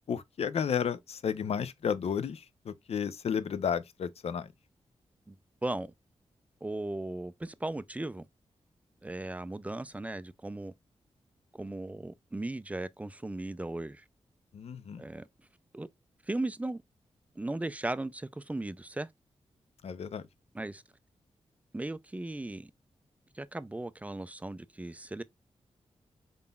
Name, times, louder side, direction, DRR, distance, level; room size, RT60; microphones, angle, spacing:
voice 1, 0.0-4.5 14.5-15.0 19.8-20.3, left 7 dB, 65° left, 0.5 m, -32 dB
voice 2, 5.6-5.9 6.6-8.3 9.0-10.7 11.5-14.0 15.0-15.3 15.7-15.9 16.3-16.8 17.4-19.1 20.6-20.8 21.7-22.7 23.3-25.2, right 2 dB, 10° right, 0.3 m, -37 dB
3.9 x 3.7 x 2.2 m
cardioid pair, 70°, 11 cm